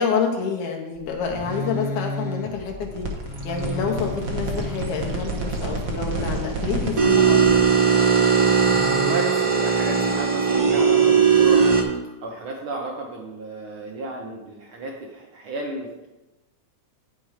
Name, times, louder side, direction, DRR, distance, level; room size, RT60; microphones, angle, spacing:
voice 1, 0.0-3.0 3.4-7.8, left 5 dB, 85° left, 1 dB, 2.5 m, -28 dB
sound 1, 1.0-7.8 8.6-9.6 10.9-11.1, left 2 dB, 50° left, 1.3 m, -35 dB
sound 2, 2.8-11.8, right 6 dB, 55° right, 0.9 m, -20 dB
voice 2, 8.9-11.6 12.2-16.1, right 2 dB, 75° right, 0 dB, 1.2 m, -33 dB
9.1 x 6.0 x 4.9 m, 1.1 s
omnidirectional pair, 3.4 m